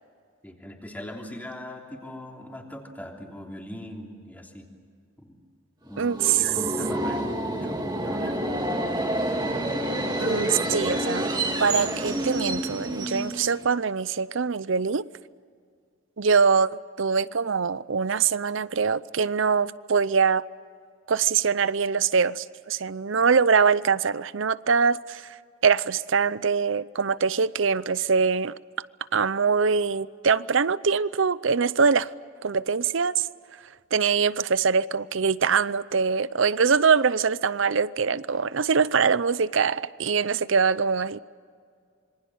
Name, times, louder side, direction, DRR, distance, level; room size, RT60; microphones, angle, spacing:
voice 1, 0.4-4.7 5.2-5.4 5.8-8.4 8.7-8.9, left 1 dB, 10° left, 3.2 m, -40 dB
Subway metro underground, 5.9-13.7, right 1 dB, 20° right, 2.3 m, -28 dB
voice 2, 6.0-6.4 10.2-11.3 11.6-15.0 16.2-16.7 17.0-20.4 21.1-25.3 25.6-28.5 29.1-32.1 32.4-33.3 33.9-41.2, right 5 dB, 70° right, 0.6 m, -23 dB
26.5 x 24.0 x 7.4 m
head